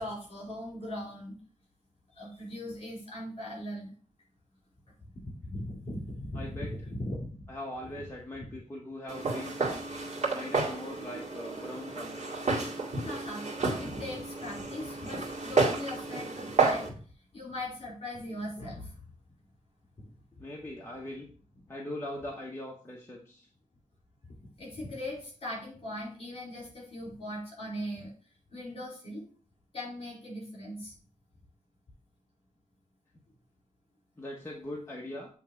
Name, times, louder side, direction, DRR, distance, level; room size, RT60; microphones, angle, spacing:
voice 1, 0.0-1.4 2.1-3.9 5.2-7.5 13.0-17.0 17.3-19.0 24.3-28.1 28.5-29.2 29.7-30.9, left 1 dB, 45° left, -3 dB, 4.1 m, -39 dB
voice 2, 6.3-6.7 7.5-9.9 10.3-12.3 20.4-21.3 21.7-23.5 34.2-35.3, left 1 dB, 20° left, -2 dB, 1.1 m, -41 dB
Walk footsteps, 9.1-16.9, right 3 dB, 60° right, 2.0 m, -31 dB
8.5 x 3.2 x 5.8 m, 0.42 s
wide cardioid pair, 170°, 13 cm